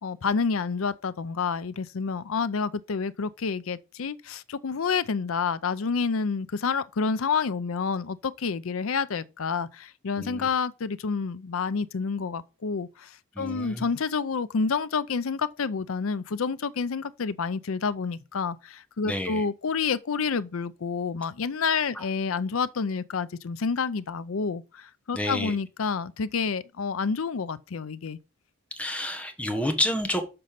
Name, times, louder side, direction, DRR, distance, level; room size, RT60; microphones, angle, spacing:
voice 1, 0.0-28.2, left 5 dB, 85° left, 0.6 m, -29 dB
voice 2, 10.1-10.5 13.3-13.8 19.0-19.5 21.9-22.0 25.1-25.6 28.8-30.2, left 1 dB, 5° left, 1.2 m, -29 dB
6.7 x 5.3 x 5.8 m
head